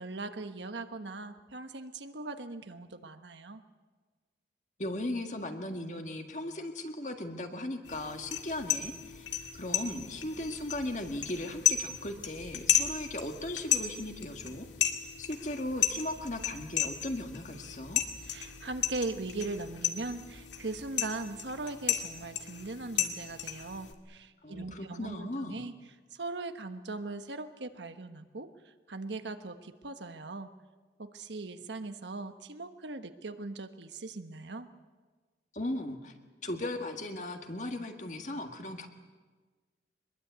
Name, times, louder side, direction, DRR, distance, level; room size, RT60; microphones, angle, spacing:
voice 1, 0.0-3.6 18.2-25.7 26.1-30.5 31.0-34.7, right 3 dB, 80° right, 8 dB, 1.3 m, -40 dB
voice 2, 4.8-14.7 15.2-18.0 24.4-25.6 35.5-36.1 36.4-38.9, left 1 dB, 40° left, 5 dB, 1.9 m, -37 dB
sound 1, 7.9-23.9, left 10 dB, 90° left, 2.2 m, -34 dB
23.5 x 21.5 x 8.2 m, 1.4 s
head